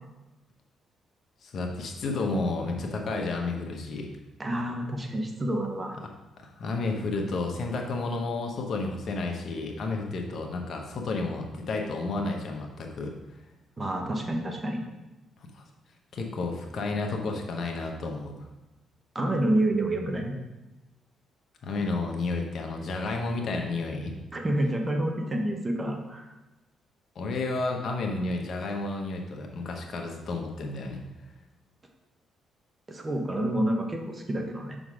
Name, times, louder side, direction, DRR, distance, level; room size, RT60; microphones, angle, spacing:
voice 1, 1.4-4.1 6.4-13.1 15.5-15.6 16.1-18.3 21.6-24.1 27.1-31.0, left 3 dB, 60° left, 2 dB, 1.0 m, -31 dB
voice 2, 4.4-6.0 13.8-14.8 19.1-20.4 24.3-26.2 32.9-34.8, right 1 dB, 25° right, 3 dB, 0.9 m, -28 dB
6.1 x 3.9 x 4.9 m, 1.0 s
cardioid pair, 90°, 0 cm